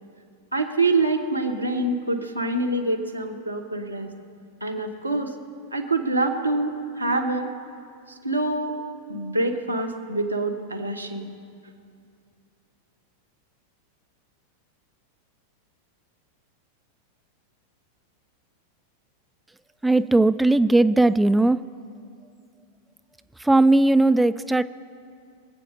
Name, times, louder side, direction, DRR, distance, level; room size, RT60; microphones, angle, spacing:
voice 1, 0.5-4.1 4.6-5.3 5.7-7.5 8.2-8.8 9.1-11.3, right 2 dB, 85° right, 1 dB, 1.3 m, -25 dB
voice 2, 19.8-21.6 23.4-24.6, right 2 dB, 5° right, 12 dB, 0.3 m, -18 dB
24.5 x 8.3 x 6.5 m, 2.3 s
figure-of-eight pair, 90°, 0 cm